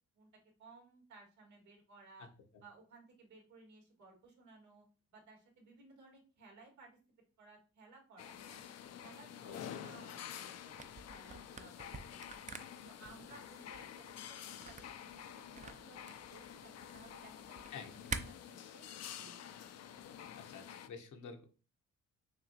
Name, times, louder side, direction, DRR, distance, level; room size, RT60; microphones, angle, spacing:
voice 1, 0.6-2.3 2.6-4.8 5.1-7.0 7.4-8.6 9.0-12.5 12.8-17.8 18.2-18.8 19.1-19.6, right 3 dB, 70° right, 0 dB, 2.1 m, -59 dB
sound 1, 8.2-20.9, left 9 dB, 55° left, 0.5 m, -49 dB
voice 2, 9.4-9.8 17.7-18.0 20.3-21.4, left 5 dB, 75° left, 4 dB, 1.1 m, -49 dB
Camera, 10.7-18.2, right 5 dB, 25° right, 0.5 m, -47 dB
5.8 x 2.9 x 2.8 m, 0.36 s
cardioid pair, 90°, 30 cm